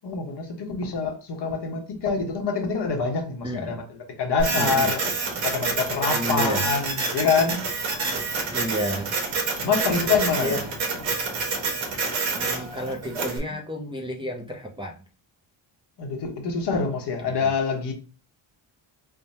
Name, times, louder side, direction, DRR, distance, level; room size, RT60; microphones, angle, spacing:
voice 1, 0.0-5.0 5.4-7.7 9.6-10.6 16.0-17.9, left 5 dB, 60° left, 1.1 m, -26 dB
voice 2, 3.4-3.8 4.6-4.9 6.1-6.7 8.5-9.1 10.4-10.6 12.3-14.9 17.2-17.5, equal, 10° right, 0.6 m, -31 dB
Printer, 4.4-13.4, right 4 dB, 70° right, 1.2 m, -27 dB
3.5 x 2.2 x 4.1 m
cardioid pair, 115°, 47 cm